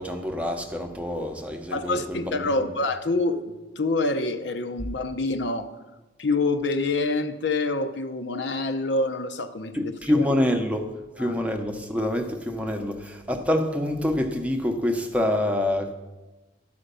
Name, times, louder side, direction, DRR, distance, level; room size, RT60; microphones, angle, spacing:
voice 1, 0.0-2.7 9.7-15.9, left 1 dB, 5° right, 4 dB, 0.8 m, -26 dB
voice 2, 1.7-5.7 6.2-10.2 11.2-11.3, left 2 dB, 70° left, 8 dB, 0.7 m, -26 dB
12.0 x 5.1 x 6.8 m, 1.1 s
head